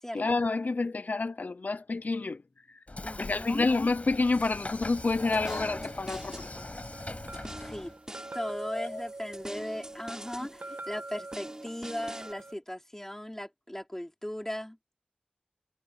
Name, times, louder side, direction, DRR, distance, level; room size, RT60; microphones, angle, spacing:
voice 1, 0.1-2.4 2.7-2.8 3.2-6.6 8.7-9.0, left 3 dB, 75° left, 0.5 m, -29 dB
Train / Sliding door, 2.9-7.9, left 2 dB, 50° left, 7.5 m, -40 dB
voice 2, 3.0-3.7 7.6-7.9 8.3-14.8, equal, 15° left, 4.6 m, -38 dB
sound 1, 4.3-12.3, right 1 dB, 20° right, 5.1 m, -47 dB
sound 2, 4.4-12.5, right 2 dB, 65° right, 1.3 m, -45 dB
wide cardioid pair, 45°, 3 cm